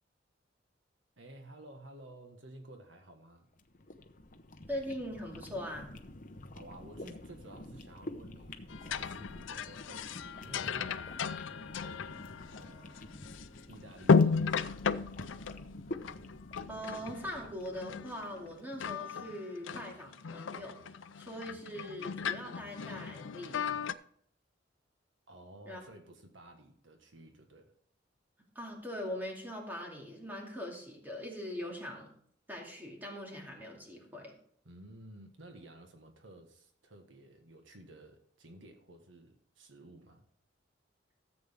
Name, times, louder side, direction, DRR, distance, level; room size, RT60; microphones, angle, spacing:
voice 1, 1.2-3.5 6.5-13.1 13.7-14.9 25.3-27.7 34.6-40.2, right 1 dB, 85° right, 1.5 m, -53 dB
sound 1, 3.5-18.8, left 1 dB, 45° left, 0.8 m, -48 dB
voice 2, 4.7-5.9 16.7-23.9 25.7-25.8 28.5-32.1 32.5-34.3, equal, 10° right, 2.4 m, -42 dB
sound 2, 8.7-13.6 14.0-17.5 17.8-18.5 18.8-23.9, left 5 dB, 85° left, 0.5 m, -34 dB
14.0 x 7.8 x 3.6 m
head